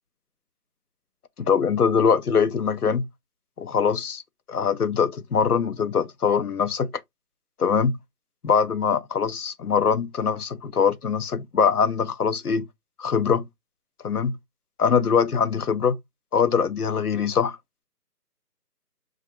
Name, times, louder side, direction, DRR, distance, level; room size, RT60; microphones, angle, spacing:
voice 1, 1.4-3.1 3.6-4.2 4.5-6.9 7.6-8.0 8.4-12.7 13.0-13.5 14.0-14.4 14.8-16.0 16.3-17.6, left 6 dB, 65° left, 0.7 m, -22 dB
6.1 x 2.4 x 2.8 m
figure-of-eight pair, 165°, 49 cm